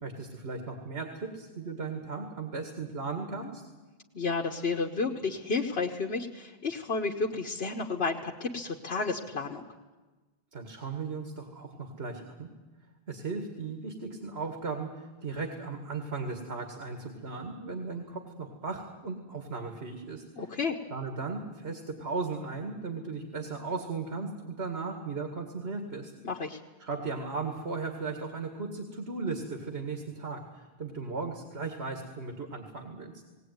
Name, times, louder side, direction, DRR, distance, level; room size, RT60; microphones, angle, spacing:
voice 1, 0.0-3.6 10.5-12.5 13.1-20.2 20.9-26.1 26.8-33.2, right 4 dB, 90° right, 5 dB, 2.2 m, -36 dB
voice 2, 4.1-9.6 20.4-20.8 26.2-26.6, left 4 dB, 75° left, 1 dB, 1.5 m, -31 dB
19.0 x 18.5 x 9.4 m, 1.2 s
omnidirectional pair, 1.0 m